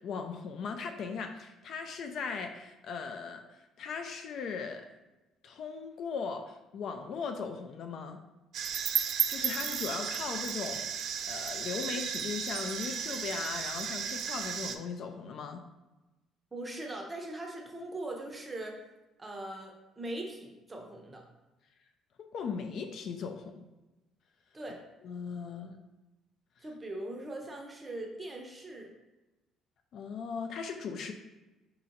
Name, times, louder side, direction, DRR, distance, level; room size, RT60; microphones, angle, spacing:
voice 1, 0.0-4.9 5.4-8.2 9.3-15.6 22.3-23.6 25.0-25.8 29.9-31.1, left 5 dB, 50° left, 6 dB, 0.4 m, -38 dB
sound 1, 8.5-14.8, right 8 dB, 50° right, 0.3 m, -34 dB
voice 2, 16.5-18.8 19.2-21.2 24.5-24.8 26.6-28.9, right 1 dB, 15° right, 1 dB, 0.6 m, -40 dB
4.2 x 2.8 x 3.8 m, 1.1 s
cardioid pair, 155°, 0 cm